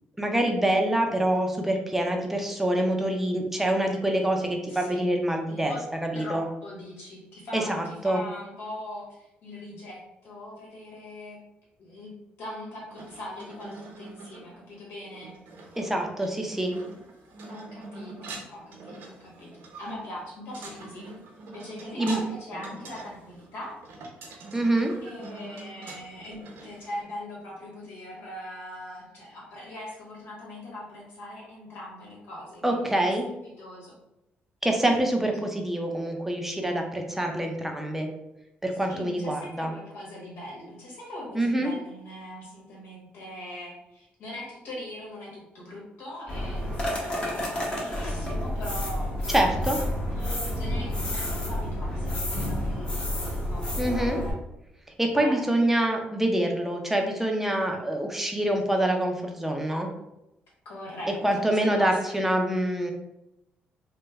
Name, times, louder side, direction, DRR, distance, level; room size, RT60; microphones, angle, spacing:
voice 1, 0.2-5.7 6.0-6.5 7.5-8.2 15.8-16.7 22.0-22.2 24.5-24.9 32.6-33.3 34.6-38.1 38.6-39.7 41.3-41.7 49.3-49.8 53.8-54.2 55.0-59.9 61.2-62.9, right 1 dB, 5° right, 2 dB, 0.5 m, -26 dB
voice 2, 4.7-5.0 5.5-5.8 6.1-11.4 11.8-15.3 17.5-21.1 21.5-23.8 25.0-33.0 33.4-34.0 34.9-35.0 38.9-49.8 50.2-54.1 55.1-55.4 60.6-62.3, left 1 dB, 80° left, -4 dB, 1.4 m, -41 dB
sound 1, 12.9-27.0, right 3 dB, 80° right, 0.8 m, -44 dB
sound 2, 46.3-54.3, left 1 dB, 30° left, 0.9 m, -30 dB
3.1 x 2.1 x 3.4 m, 0.88 s
cardioid pair, 115°, 4 cm